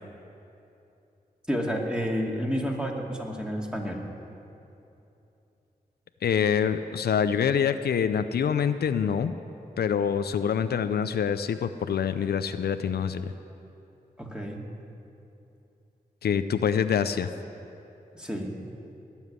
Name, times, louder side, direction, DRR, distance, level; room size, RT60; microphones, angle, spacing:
voice 1, 1.5-4.0 14.2-14.6 18.1-18.6, equal, 5° right, 0 dB, 2.5 m, -30 dB
voice 2, 6.2-9.4 9.8-13.3 16.2-17.3, left 7 dB, 80° left, 10 dB, 0.6 m, -25 dB
18.5 x 7.3 x 9.7 m, 2.8 s
cardioid pair, 55°, 16 cm